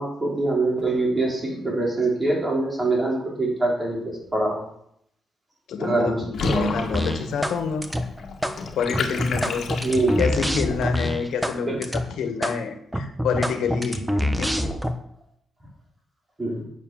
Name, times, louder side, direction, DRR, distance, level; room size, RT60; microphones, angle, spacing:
voice 1, 0.0-4.0 4.3-4.6 5.8-6.6 9.8-10.3 11.6-11.8 16.4-16.6, right 2 dB, 20° right, -2 dB, 4.7 m, -24 dB
voice 2, 5.7-7.8 8.8-9.8 10.2-14.7, left 5 dB, 90° left, 7 dB, 1.8 m, -27 dB
Water / Bathtub (filling or washing), 6.3-10.4, left 4 dB, 60° left, 2.0 m, -31 dB
sound 1, 6.9-7.6 7.8-8.6 8.9-11.6 11.8-12.0 12.4-12.6 12.9-14.9, equal, 5° right, 1.1 m, -25 dB
9.5 x 7.5 x 7.1 m, 0.71 s
cardioid pair, 110°, 0 cm